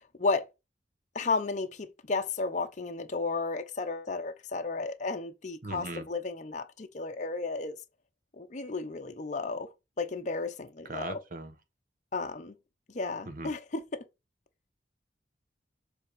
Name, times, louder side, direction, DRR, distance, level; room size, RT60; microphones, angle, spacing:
voice 1, 1.1-7.8 8.3-9.7 10.0-11.2 12.1-12.5 12.9-14.0, left 3 dB, 40° left, 0.7 m, -33 dB
voice 2, 5.6-6.0 10.9-11.5 13.3-13.5, right 2 dB, 50° right, 1.0 m, -38 dB
7.3 x 3.5 x 4.9 m
head